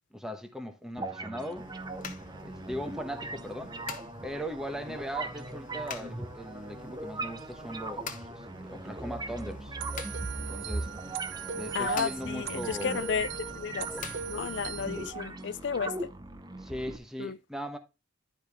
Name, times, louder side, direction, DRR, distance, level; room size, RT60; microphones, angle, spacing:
voice 1, 0.1-1.7 2.4-3.8 4.2-9.8 10.4-10.9 11.5-13.0 16.6-17.8, equal, ahead, 1.1 m, -39 dB
sound 1, 1.0-17.0, right 2 dB, 20° right, 0.7 m, -39 dB
sound 2, 1.6-15.1, left 4 dB, 40° left, 1.2 m, -46 dB
sound 3, 9.8-15.1, right 8 dB, 60° right, 0.7 m, -40 dB
voice 2, 11.7-13.9 14.3-16.1 17.2-17.4, left 6 dB, 55° left, 0.4 m, -33 dB
12.0 x 5.1 x 3.5 m
head